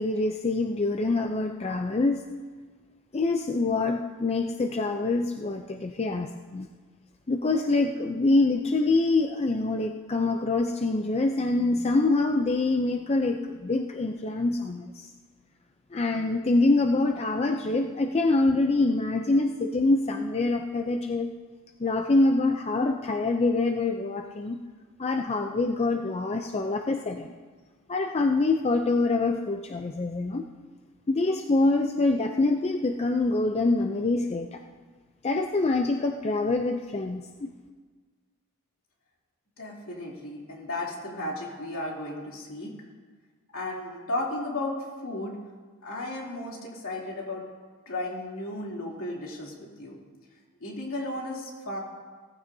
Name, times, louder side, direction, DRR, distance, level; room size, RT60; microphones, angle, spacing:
voice 1, 0.0-2.2 3.1-6.7 7.3-15.1 15.9-21.3 21.8-24.6 25.0-27.3 27.9-30.4 31.1-34.6 35.2-37.5, left 2 dB, 30° left, 4 dB, 0.5 m, -25 dB
voice 2, 39.6-42.7 43.5-44.8 45.0-45.4 45.8-47.4 47.9-50.0 50.6-51.8, left 2 dB, 65° left, -3 dB, 3.1 m, -34 dB
18.0 x 14.5 x 2.7 m, 1.5 s
head